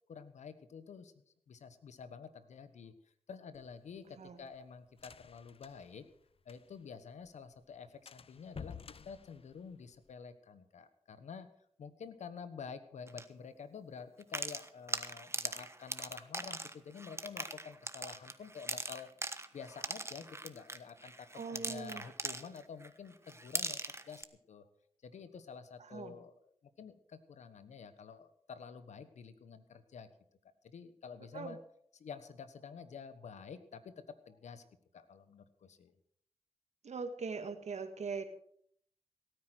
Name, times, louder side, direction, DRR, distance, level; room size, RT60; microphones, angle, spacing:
voice 1, 0.1-2.9 3.3-6.1 6.4-11.5 11.8-19.1 19.5-23.8 24.1-24.7 25.0-26.3 26.8-30.1 30.6-31.6 31.9-34.6 34.9-35.9, left 6 dB, 90° left, 12 dB, 1.2 m, -49 dB
sound 1, 3.5-6.9 7.2-7.3 7.6-7.7 8.1-10.1, left 6 dB, 55° left, 0.6 m, -52 dB
sound 2, 13.1-13.2 14.2-22.9 23.3-24.2, right 2 dB, 20° right, 1.4 m, -40 dB
voice 2, 21.3-22.0 25.8-26.2 31.3-31.6 36.8-38.3, right 5 dB, 75° right, 7 dB, 1.9 m, -41 dB
17.5 x 9.6 x 6.3 m, 0.66 s
cardioid pair, 45°, 12 cm